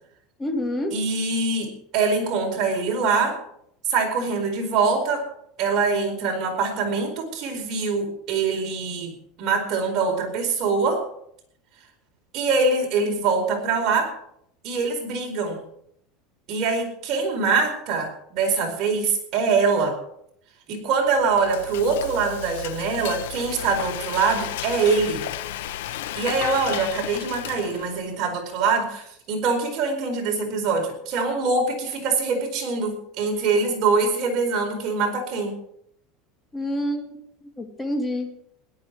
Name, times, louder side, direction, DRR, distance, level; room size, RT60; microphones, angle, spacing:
voice 1, 0.4-0.9 36.5-37.2 37.6-38.3, left 1 dB, 10° left, 4 dB, 2.0 m, -27 dB
voice 2, 0.9-3.4 3.9-5.2 5.6-11.0 12.3-14.1 14.6-15.6 16.5-20.0 20.7-25.2 26.1-35.5, right 4 dB, 45° right, 1 dB, 4.7 m, -24 dB
Frying (food), 21.0-28.1, left 12 dB, 85° left, 0.8 m, -33 dB
17.0 x 11.5 x 4.7 m, 0.71 s
supercardioid pair, 155°, 0 cm